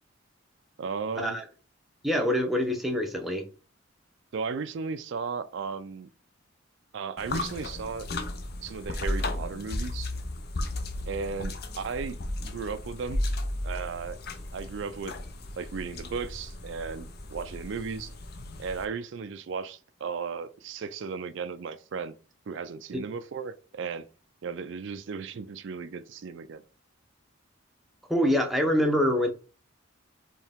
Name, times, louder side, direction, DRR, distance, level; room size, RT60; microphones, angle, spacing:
voice 1, 0.8-1.4 4.3-6.1 6.9-8.1 8.6-10.1 11.1-13.2 13.6-14.2 14.5-15.1 15.6-18.1 18.6-22.1 22.5-24.0 24.4-26.6, right 5 dB, 60° right, 0.4 m, -35 dB
voice 2, 2.0-3.4 22.9-23.0 28.1-29.3, equal, ahead, 0.7 m, -25 dB
sound 1, 7.2-18.9, left 1 dB, 50° left, 0.6 m, -35 dB
4.5 x 3.3 x 3.5 m
head